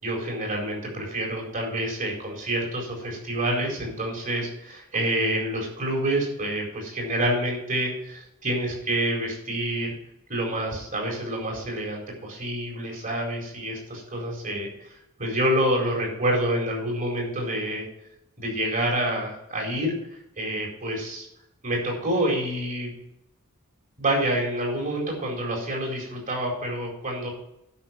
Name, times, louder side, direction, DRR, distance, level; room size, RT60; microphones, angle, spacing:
voice 1, 0.0-9.9 10.3-14.7 15.2-17.9 18.4-21.3 21.6-22.9 24.0-27.3, right 1 dB, 40° right, 0 dB, 4.5 m, -27 dB
12.0 x 6.5 x 5.9 m, 0.81 s
head